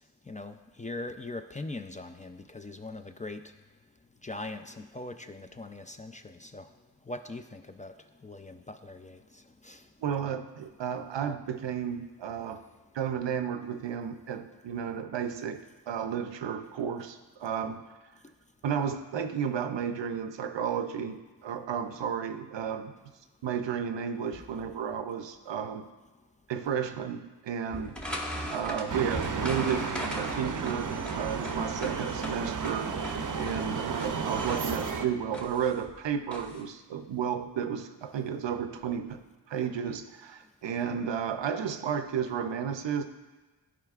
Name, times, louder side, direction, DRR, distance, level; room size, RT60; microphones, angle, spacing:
voice 1, 0.2-3.5 4.2-6.7 7.0-9.9 12.5-12.6 18.2-18.3 24.3-24.6 25.5-25.6 26.6-26.7 28.5-28.6, left 2 dB, 20° left, 7 dB, 0.3 m, -42 dB
voice 2, 10.0-12.6 12.9-17.8 18.6-22.9 23.4-25.9 26.5-27.9 28.5-39.2 39.5-43.0, right 7 dB, 90° right, 9 dB, 0.5 m, -33 dB
sound 1, 27.7-36.6, equal, 5° left, 1.0 m, -40 dB
sound 2, 28.9-35.1, right 5 dB, 50° right, 0.5 m, -33 dB
12.0 x 4.8 x 2.4 m, 1.2 s
wide cardioid pair, 50°, 42 cm